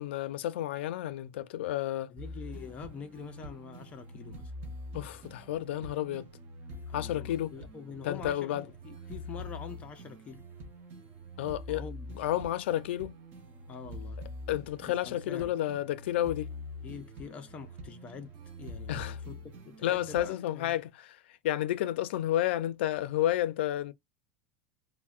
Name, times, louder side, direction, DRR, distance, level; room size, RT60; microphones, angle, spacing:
voice 1, 0.0-2.1 4.9-6.3 6.9-7.5 8.0-8.6 11.4-11.8 12.2-13.2 14.5-16.5 18.9-19.2 19.8-23.9, left 13 dB, 90° left, 0.4 m, -31 dB
voice 2, 2.1-4.5 6.9-10.4 11.7-12.2 13.7-14.2 14.9-15.6 16.8-18.3 18.6-20.8, left 6 dB, 20° left, 0.4 m, -45 dB
sound 1, 2.2-20.3, left 1 dB, 35° right, 0.8 m, -45 dB
4.2 x 2.0 x 2.3 m
supercardioid pair, 170°, 6 cm